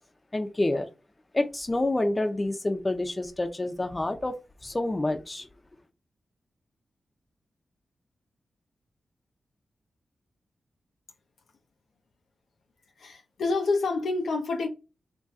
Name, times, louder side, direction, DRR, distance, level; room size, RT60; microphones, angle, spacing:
voice 1, 0.3-0.9 1.3-4.3 4.6-5.5, left 2 dB, 30° left, 0.8 m, -28 dB
voice 2, 13.0-14.7, left 3 dB, 85° left, 0.6 m, -27 dB
3.0 x 2.4 x 4.1 m
cardioid pair, 50°, 0 cm